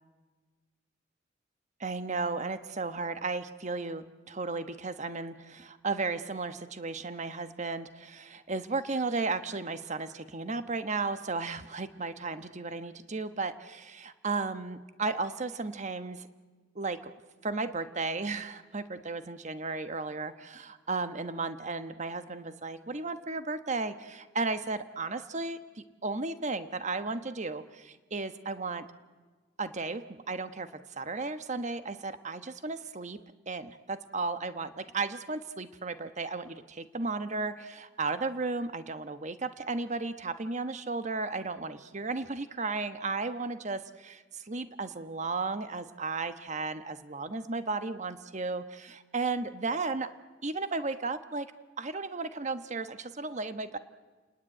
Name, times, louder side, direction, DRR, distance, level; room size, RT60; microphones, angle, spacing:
voice 1, 1.8-16.3 16.7-17.1 17.4-28.8 29.6-30.7 31.0-50.1 50.4-51.5 51.8-53.8, right 3 dB, 40° right, 10 dB, 1.1 m, -34 dB
30.0 x 19.0 x 10.0 m, 1.4 s
head